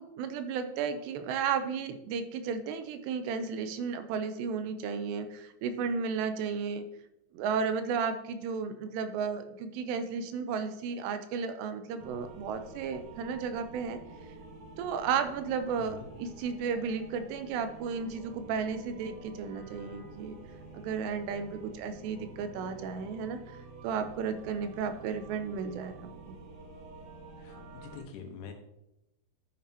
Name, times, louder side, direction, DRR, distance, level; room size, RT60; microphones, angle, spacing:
voice 1, 0.0-6.9 7.3-14.0 14.8-20.4 20.7-23.6 23.8-26.4, right 6 dB, 90° right, 9 dB, 2.8 m, -33 dB
sound 1, 12.0-28.0, right 2 dB, 55° right, 2.7 m, -49 dB
voice 2, 15.8-16.1 27.4-28.5, left 6 dB, 80° left, 4 dB, 3.2 m, -45 dB
12.0 x 7.3 x 2.8 m, 0.87 s
omnidirectional pair, 4.9 m